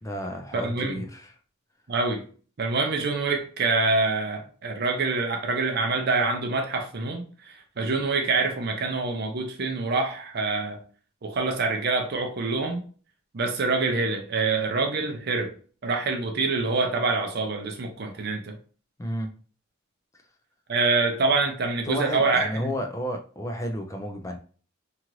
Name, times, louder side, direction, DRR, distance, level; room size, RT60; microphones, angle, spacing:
voice 1, 0.0-1.3 19.0-19.3 21.9-24.4, equal, 15° left, 0.4 m, -32 dB
voice 2, 0.5-1.0 1.9-2.2 2.6-10.8 11.2-12.8 13.3-15.5 15.8-18.6 20.7-22.7, right 3 dB, 50° right, 0.5 m, -26 dB
2.8 x 2.5 x 3.0 m
head